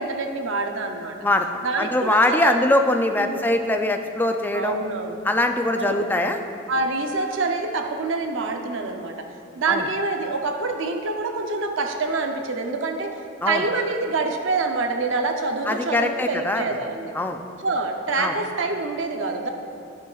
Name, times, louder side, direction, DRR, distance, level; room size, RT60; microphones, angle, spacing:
voice 1, 0.0-1.2 1.6-2.6 3.2-3.4 4.5-5.2 5.7-6.1 6.7-9.2 9.5-17.1 17.6-19.5, right 3 dB, 70° right, 4 dB, 0.6 m, -26 dB
voice 2, 1.8-4.8 5.2-6.4 9.7-9.9 13.4-13.7 15.7-16.6 17.1-17.4 18.2-18.3, left 1 dB, 10° left, 5 dB, 0.4 m, -22 dB
14.0 x 5.6 x 2.4 m, 2.5 s
head